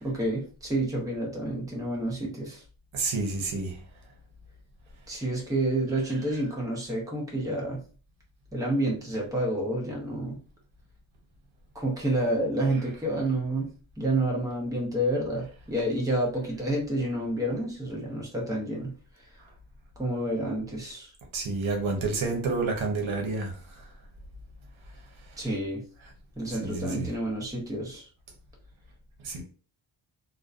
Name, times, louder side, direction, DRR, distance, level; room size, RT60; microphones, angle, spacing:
voice 1, 0.0-2.6 5.1-7.8 8.5-10.4 11.7-13.7 14.0-18.9 20.0-21.1 25.4-25.8 26.4-28.1, right 1 dB, 10° right, 0.6 m, -29 dB
voice 2, 2.9-3.7 21.3-23.5 26.6-27.1 29.2-29.4, right 3 dB, 80° right, 0.8 m, -29 dB
2.5 x 2.1 x 2.4 m
wide cardioid pair, 125°, 47 cm